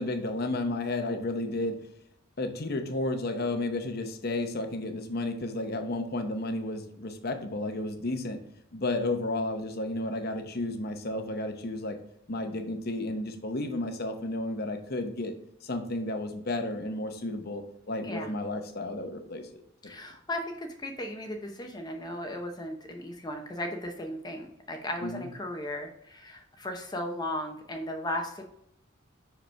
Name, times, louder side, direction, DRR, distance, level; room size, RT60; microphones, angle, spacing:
voice 1, 0.0-1.8 2.4-8.4 8.7-12.0 12.3-15.3 15.6-17.6 17.9-19.5 25.0-25.3, left 2 dB, 50° left, 5 dB, 0.8 m, -32 dB
voice 2, 19.8-28.5, left 1 dB, 20° left, 3 dB, 0.7 m, -36 dB
6.0 x 5.1 x 3.3 m, 0.74 s
head